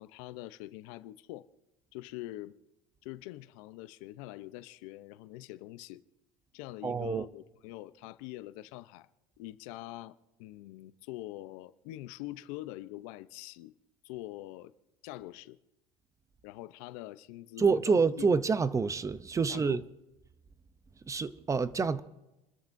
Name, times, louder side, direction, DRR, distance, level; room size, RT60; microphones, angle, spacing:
voice 1, 0.0-1.5 1.9-2.6 3.0-6.0 6.5-9.1 9.4-13.7 14.0-14.7 15.0-15.6 16.4-18.3 19.4-19.8, left 16 dB, 75° left, 0.8 m, -44 dB
voice 2, 6.8-7.2 17.6-19.8 21.1-22.0, right 5 dB, 20° right, 0.6 m, -27 dB
29.5 x 13.5 x 2.7 m
supercardioid pair, 125°, 18 cm